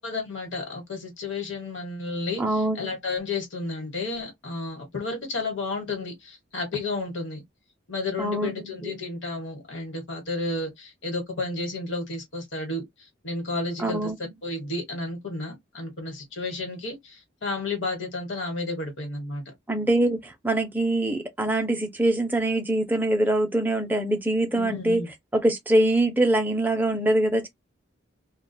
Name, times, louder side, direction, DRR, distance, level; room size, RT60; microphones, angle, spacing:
voice 1, 0.0-7.4 7.9-14.1 14.4-19.4 24.5-25.1, left 3 dB, 65° left, 1.1 m, -32 dB
voice 2, 2.4-2.9 8.2-9.0 13.8-14.2 19.7-25.0 25.3-27.5, right 1 dB, 10° right, 0.4 m, -24 dB
2.3 x 2.2 x 2.6 m
head